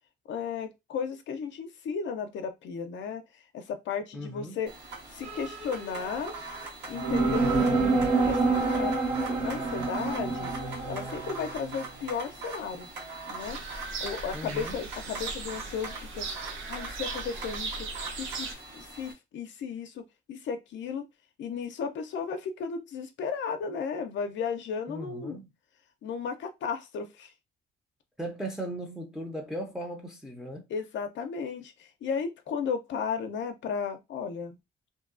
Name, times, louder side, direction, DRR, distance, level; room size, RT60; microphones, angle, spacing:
voice 1, 0.3-4.7 5.1-6.3 6.9-9.0 9.3-10.5 10.9-12.9 13.3-13.6 14.0-16.3 16.7-21.0 21.4-25.4 26.0-27.3 30.7-34.6, left 6 dB, 70° left, 0.5 m, -35 dB
voice 2, 4.1-4.6 14.3-14.8 24.9-25.5 28.2-30.7, right 1 dB, 5° right, 0.6 m, -37 dB
sound 1, 4.7-19.1, right 3 dB, 60° right, 1.2 m, -42 dB
sound 2, 5.2-6.4 7.0-11.7, right 3 dB, 35° right, 1.1 m, -27 dB
sound 3, 13.4-18.5, right 3 dB, 80° right, 0.7 m, -38 dB
2.6 x 2.2 x 2.4 m
cardioid pair, 90°, 20 cm